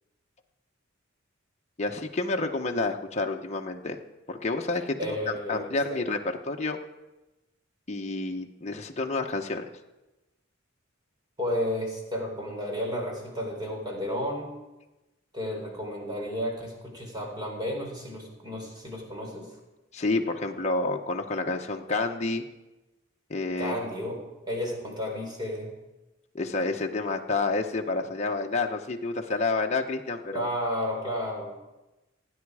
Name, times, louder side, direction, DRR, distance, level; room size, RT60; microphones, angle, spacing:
voice 1, 1.8-4.0 4.3-6.8 7.9-9.6 19.9-22.4 23.3-23.8 26.3-30.5, left 3 dB, 35° left, 2 dB, 1.0 m, -29 dB
voice 2, 5.0-6.1 11.4-14.5 15.3-19.5 23.6-24.2 24.5-25.7 30.3-31.5, equal, 20° right, 0 dB, 4.1 m, -32 dB
29.0 x 9.7 x 4.9 m, 1.0 s
head